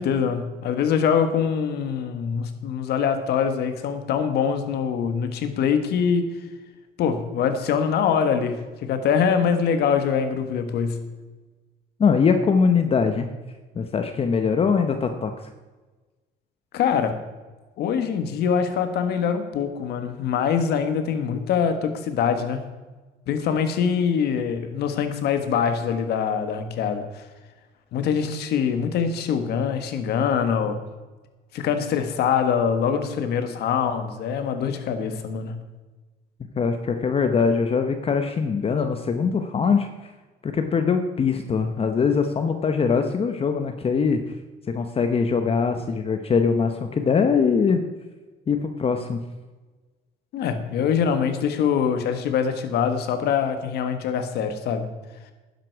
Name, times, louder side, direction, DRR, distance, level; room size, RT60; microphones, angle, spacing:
voice 1, 0.0-6.3 7.0-11.1 16.7-17.2 17.8-22.7 23.3-27.2 27.9-30.8 31.5-35.6 50.3-54.9, left 7 dB, 75° left, 8 dB, 1.5 m, -24 dB
voice 2, 12.0-13.3 13.7-15.3 36.5-39.9 40.4-44.2 44.7-47.8 48.5-49.2, left 5 dB, 35° left, 7 dB, 0.9 m, -22 dB
12.5 x 10.0 x 4.7 m, 1.2 s
cardioid pair, 110°, 17 cm